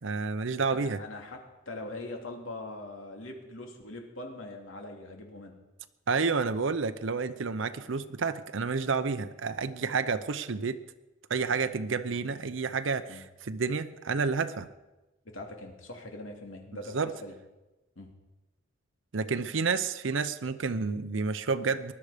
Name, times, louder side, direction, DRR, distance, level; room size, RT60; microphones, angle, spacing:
voice 1, 0.0-1.0 6.1-10.8 11.3-14.7 16.9-17.1 19.1-21.9, right 4 dB, 70° right, 11 dB, 0.7 m, -30 dB
voice 2, 0.7-5.5 13.1-13.2 15.2-17.3 18.0-18.1, left 2 dB, 85° left, 2 dB, 2.8 m, -42 dB
20.0 x 12.0 x 5.0 m, 1.1 s
head